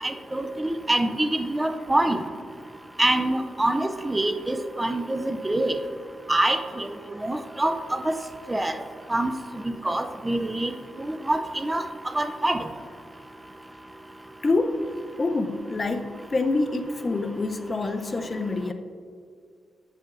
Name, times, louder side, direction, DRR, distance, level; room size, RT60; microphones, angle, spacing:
voice 1, 0.0-2.2 3.0-5.7 6.3-6.9 7.2-8.2 8.5-8.7 9.1-9.3 9.8-10.7 11.0-11.9 12.1-12.6, right 1 dB, 15° right, 8 dB, 0.5 m, -25 dB
voice 2, 14.4-14.8 15.2-18.7, left 3 dB, 35° left, 8 dB, 0.5 m, -26 dB
8.7 x 7.4 x 2.5 m, 2.2 s
cardioid pair, 75°, 0 cm